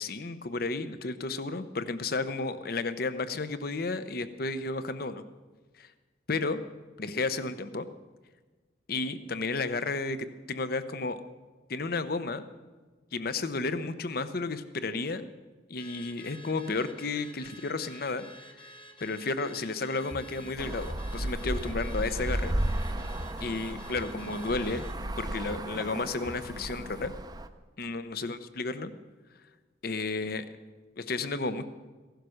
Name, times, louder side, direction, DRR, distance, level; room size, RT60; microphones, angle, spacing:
voice 1, 0.0-5.2 6.3-6.6 7.0-7.9 8.9-10.2 10.5-11.2 11.7-12.4 13.1-15.3 15.7-18.2 19.0-22.5 23.4-24.9 25.2-27.1 27.8-28.9 29.8-30.4 31.0-31.6, left 3 dB, 55° left, 12 dB, 0.8 m, -32 dB
Car / Alarm, 15.8-25.0, equal, 30° left, 1.2 m, -51 dB
sound 1, 19.9-27.1, left 1 dB, 75° left, 4.6 m, -46 dB
Traffic noise roadway noise, 20.6-27.5, right 1 dB, 20° right, 0.6 m, -34 dB
16.0 x 11.5 x 6.4 m, 1.3 s
head